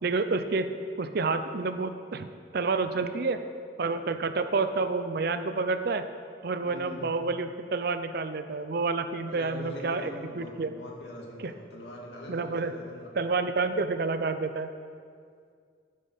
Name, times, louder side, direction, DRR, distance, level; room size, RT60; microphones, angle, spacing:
voice 1, 0.0-3.4 3.8-6.1 6.4-10.1 10.4-10.7 11.4-11.5 12.3-12.7 13.2-14.7, right 3 dB, 55° right, 9 dB, 0.5 m, -29 dB
voice 2, 6.6-7.1 9.2-13.1, equal, 65° left, -2 dB, 2.2 m, -42 dB
11.0 x 10.5 x 4.1 m, 2.2 s
head